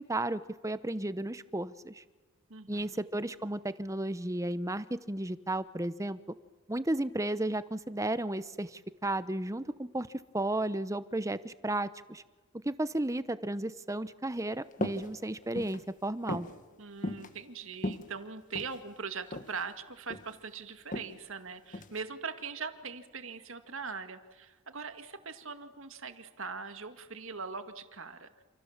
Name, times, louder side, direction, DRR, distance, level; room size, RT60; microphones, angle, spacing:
voice 1, 0.0-2.0 2.7-6.2 6.7-10.1 10.3-12.2 12.6-16.5, right 1 dB, 15° right, 14 dB, 0.8 m, -33 dB
voice 2, 2.5-3.0 16.8-28.3, right 5 dB, 60° right, 8 dB, 2.1 m, -41 dB
sound 1, 14.7-15.1 15.4-15.8 16.3-16.5 17.0-17.3 17.7-18.8 19.3-19.6 19.9-20.4 20.9-21.1 21.7-22.0, left 1 dB, 35° left, 1.7 m, -36 dB
28.5 x 28.0 x 7.4 m, 1.3 s
head